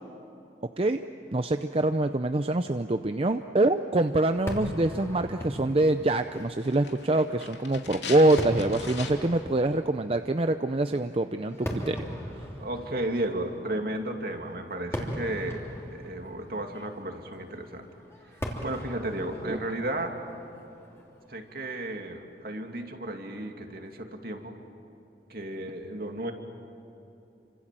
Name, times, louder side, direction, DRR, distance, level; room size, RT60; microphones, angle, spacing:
voice 1, 1.3-12.0 19.5-19.6, right 2 dB, 35° right, 8 dB, 0.6 m, -25 dB
Fireworks, 4.5-21.8, equal, 15° left, 3.1 m, -40 dB
sound 1, 6.6-9.5 9.7-9.8, left 5 dB, 90° left, 2.9 m, -40 dB
voice 2, 12.6-15.6 15.9-17.9 18.6-20.2 21.3-24.5 25.3-26.3, right 1 dB, 55° right, 3 dB, 2.5 m, -33 dB
29.5 x 26.0 x 7.6 m, 2.9 s
head